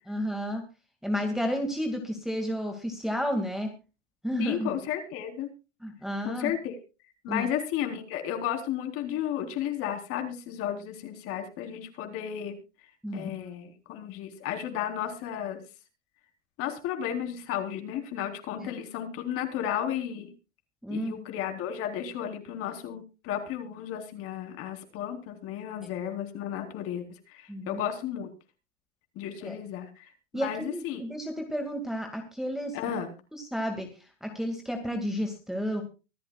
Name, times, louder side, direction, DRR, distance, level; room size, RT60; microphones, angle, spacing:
voice 1, 0.1-0.6 1.0-3.7 4.2-4.8 5.8-6.5 7.3-7.5 13.0-13.5 18.6-18.7 20.8-21.2 25.8-25.9 27.5-27.8 29.4-29.6 30.3-32.8 33.3-35.8, equal, ahead, 3 dB, 2.0 m, -32 dB
voice 2, 4.4-5.5 6.2-6.7 7.2-12.6 13.1-15.6 16.6-20.3 20.9-28.3 29.2-31.0 32.7-33.1, left 10 dB, 40° left, 5 dB, 3.9 m, -33 dB
24.5 x 10.5 x 2.3 m, 0.31 s
hypercardioid pair, 135°, 36 cm